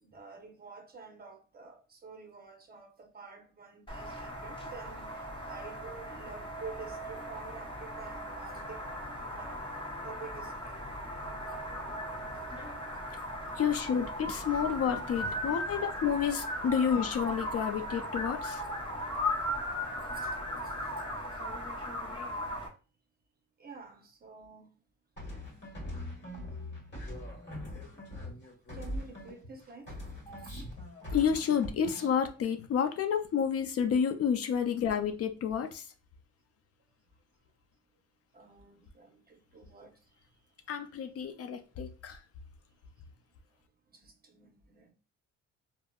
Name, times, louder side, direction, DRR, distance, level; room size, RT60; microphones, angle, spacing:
voice 1, 0.0-8.8 9.2-9.7 10.0-10.8 14.5-14.6 15.1-15.3 16.0-16.2 20.1-20.3 20.6-21.1 23.6-24.7 28.7-30.0 30.4-30.6 38.3-39.9 43.9-44.9, right 4 dB, 30° right, 0.6 m, -49 dB
sound 1, 3.9-22.7, left 1 dB, 15° left, 0.9 m, -37 dB
voice 2, 13.6-18.6 31.1-35.9 40.7-42.2, left 7 dB, 50° left, 0.4 m, -30 dB
sound 2, 25.2-29.6 29.9-32.2, left 1 dB, 35° left, 1.3 m, -42 dB
3.5 x 2.1 x 2.2 m
cardioid pair, 90°, 30 cm